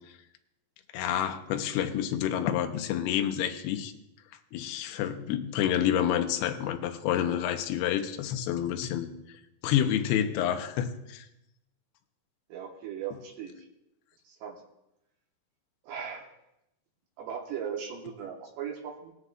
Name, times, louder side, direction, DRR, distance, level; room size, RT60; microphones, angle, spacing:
voice 1, 0.9-3.9 4.5-9.1 9.6-11.3, left 10 dB, 75° left, 2.7 m, -28 dB
voice 2, 12.5-13.7 14.3-14.6 15.8-16.3 17.2-19.1, right 8 dB, 75° right, 3.5 m, -38 dB
19.5 x 9.4 x 2.5 m
omnidirectional pair, 5.0 m